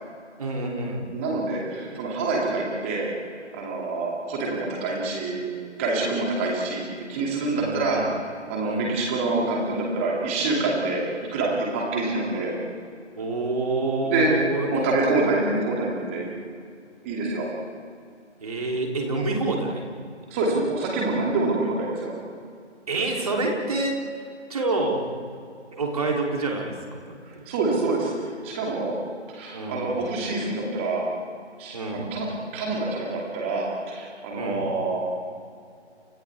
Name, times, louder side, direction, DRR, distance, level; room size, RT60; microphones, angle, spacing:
voice 1, 0.4-1.1 7.6-8.1 8.6-8.9 13.2-14.7 18.4-19.8 22.9-24.0 24.5-25.1 25.7-27.5 29.5-30.0 31.7-32.1 34.3-34.7, right 2 dB, 30° right, 0 dB, 3.4 m, -27 dB
voice 2, 1.1-3.1 3.5-5.5 5.8-11.0 11.3-12.5 14.0-14.3 14.7-16.3 17.0-17.5 20.3-22.1 27.3-28.9 29.3-31.1 31.6-32.3 32.5-35.0, right 3 dB, 10° right, -2 dB, 2.6 m, -26 dB
30.0 x 29.5 x 3.6 m, 2.3 s
figure-of-eight pair, 160°, 35 cm